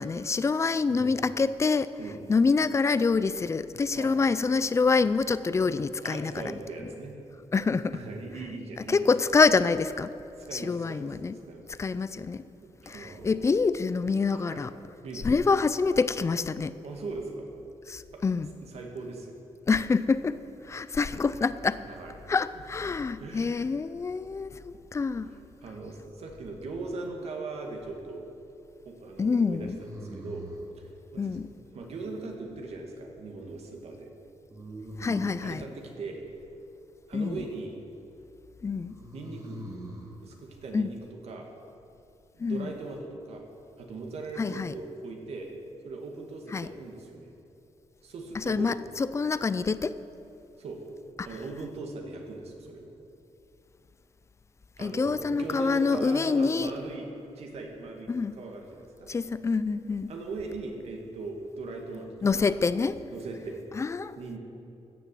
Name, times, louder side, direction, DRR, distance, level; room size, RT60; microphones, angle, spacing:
voice 1, 0.0-1.9 2.3-6.4 7.5-8.0 8.9-10.1 10.5-11.4 11.8-12.4 12.9-14.7 15.2-16.7 17.9-18.5 19.7-20.4 20.7-21.8 22.3-25.3 29.2-29.8 31.2-31.5 35.0-35.6 37.1-37.4 38.6-39.0 40.7-40.9 42.4-42.7 44.4-44.7 46.5-46.7 48.3-50.0 51.2-51.3 54.8-56.7 58.1-58.4 59.1-60.1 62.2-63.0 63.7-64.2, left 4 dB, 25° left, 15 dB, 0.4 m, -26 dB
voice 2, 6.0-7.1 7.9-9.1 10.4-11.7 12.6-13.5 14.3-14.6 15.0-15.5 16.8-17.5 18.1-18.2 18.6-19.4 21.9-22.2 23.2-23.6 25.3-28.3 28.8-30.5 30.7-31.4 31.7-34.1 35.4-36.2 37.1-37.8 39.1-39.6 40.2-41.5 42.3-43.5 43.8-45.5 45.8-47.3 48.0-48.7 50.6-50.8 51.2-52.9 54.8-57.1 57.4-59.1 60.1-62.1 62.3-62.6 63.1-63.6 64.2-64.4, right 3 dB, 65° right, 2 dB, 2.0 m, -39 dB
sound 1, 27.1-27.7 29.8-30.7 34.5-35.6 38.9-40.1, right 1 dB, 30° right, 1.9 m, -42 dB
15.5 x 7.0 x 7.6 m, 2.8 s
wide cardioid pair, 140°, 11 cm